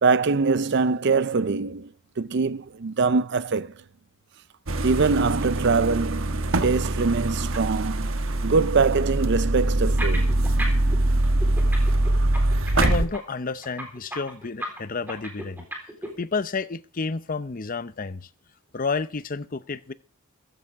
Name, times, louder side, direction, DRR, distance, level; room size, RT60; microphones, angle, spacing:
voice 1, 0.0-1.9 2.2-3.7 4.8-8.1 8.4-10.3, right 4 dB, 55° right, 0.5 m, -23 dB
sound 1, 4.7-13.1, right 1 dB, 70° right, 1.2 m, -23 dB
sound 2, 9.8-11.0 11.2-16.1, right 1 dB, 10° right, 3.9 m, -33 dB
voice 2, 12.7-15.7 16.2-18.3 18.7-19.9, left 4 dB, 40° left, 0.6 m, -30 dB
15.5 x 14.5 x 3.6 m
head